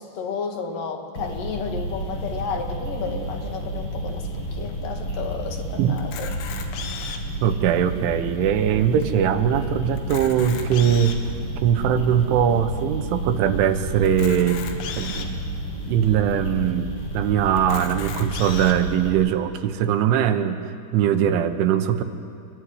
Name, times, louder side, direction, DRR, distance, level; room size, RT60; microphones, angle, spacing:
voice 1, 0.0-6.3, left 5 dB, 50° left, 4 dB, 3.1 m, -32 dB
sound 1, 1.2-19.1, right 1 dB, 20° left, 5.8 m, -31 dB
Camera, 6.0-7.4 8.0-8.1 8.3-8.5 9.0-9.1 9.9-11.3 11.9-12.0 14.1-15.3 16.0-16.1 16.4-16.5 17.6-18.8, left 7 dB, 80° left, 4.5 m, -36 dB
voice 2, 7.4-11.2 11.6-14.6 15.0-15.4 15.9-16.9 17.1-20.6 20.9-22.0, right 9 dB, 75° right, 8 dB, 3.4 m, -21 dB
27.0 x 22.5 x 9.9 m, 2.3 s
omnidirectional pair, 6.0 m